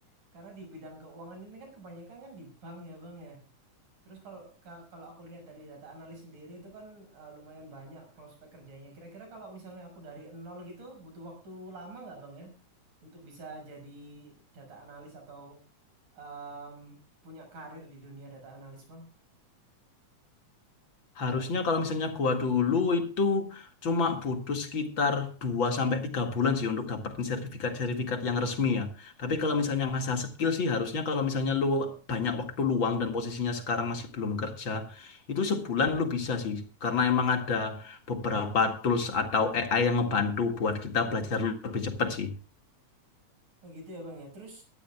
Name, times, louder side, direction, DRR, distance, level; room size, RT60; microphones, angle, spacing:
voice 1, 0.3-3.4 4.1-12.6 13.0-15.6 16.1-17.0 17.2-19.0 43.6-44.6, right 2 dB, 80° right, 8.1 m, -46 dB
voice 2, 21.2-42.3, left 4 dB, 45° left, 2.4 m, -28 dB
22.5 x 13.0 x 2.3 m
omnidirectional pair, 3.5 m